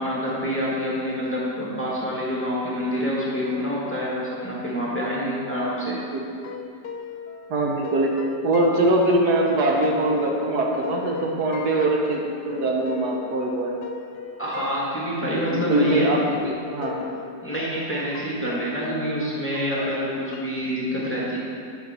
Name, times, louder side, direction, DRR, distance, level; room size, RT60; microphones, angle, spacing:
voice 1, 0.0-6.0 14.4-16.1 17.4-21.4, equal, 10° left, -7 dB, 1.3 m, -27 dB
sound 1, 6.4-16.5 16.8-20.6, left 6 dB, 70° left, 1.1 m, -38 dB
voice 2, 7.5-8.1 8.4-13.7 15.5-17.1, right 2 dB, 70° right, 0 dB, 1.3 m, -22 dB
10.5 x 5.6 x 4.2 m, 2.4 s
omnidirectional pair, 1.8 m